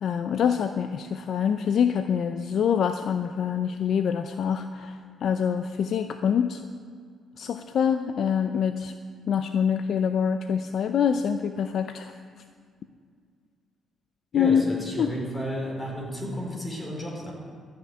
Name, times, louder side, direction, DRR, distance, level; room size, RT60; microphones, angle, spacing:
voice 1, 0.0-6.6 7.4-8.9 9.3-12.2 14.3-14.6 15.0-15.1, left 7 dB, 65° left, 8 dB, 0.5 m, -25 dB
voice 2, 14.3-17.3, equal, 20° left, -2 dB, 4.2 m, -32 dB
13.0 x 6.6 x 9.3 m, 2.1 s
cardioid pair, 90°, 0 cm